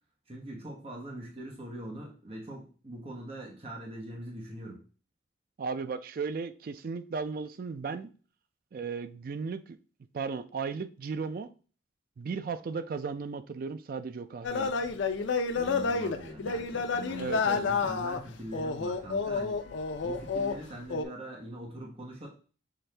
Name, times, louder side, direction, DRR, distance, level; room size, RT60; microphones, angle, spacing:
voice 1, 0.3-4.8 15.5-19.6 20.0-22.3, right 1 dB, 30° right, 1.0 m, -42 dB
voice 2, 5.6-8.1 8.7-9.8 10.1-11.5 12.2-14.7 17.1-17.6, right 5 dB, 45° right, 0.3 m, -35 dB
sound 1, 14.4-20.6 20.9-21.0, left 4 dB, 65° left, 0.4 m, -30 dB
5.8 x 2.6 x 3.2 m
head